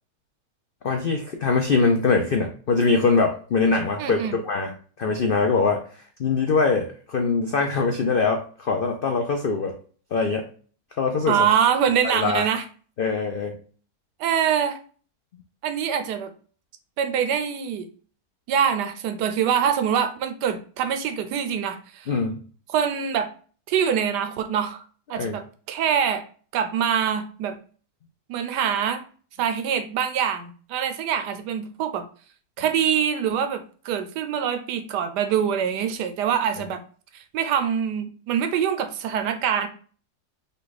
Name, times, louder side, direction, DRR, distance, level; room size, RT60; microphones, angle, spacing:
voice 1, 0.8-4.7 5.0-5.8 6.2-9.7 10.1-10.4 11.0-11.4 12.0-12.4 13.0-13.5 22.1-22.4 25.1-25.4, left 4 dB, 85° left, 3 dB, 0.4 m, -22 dB
voice 2, 4.0-4.4 11.3-12.6 14.2-14.8 15.6-16.3 17.0-17.9 18.5-22.1 22.7-23.3 23.7-24.8 25.1-25.4 25.7-26.2 26.5-27.6 28.3-29.0 29.4-32.0 32.6-36.8 37.1-39.7, right 8 dB, 85° right, 8 dB, 1.3 m, -24 dB
5.4 x 2.3 x 4.0 m, 0.42 s
omnidirectional pair, 1.8 m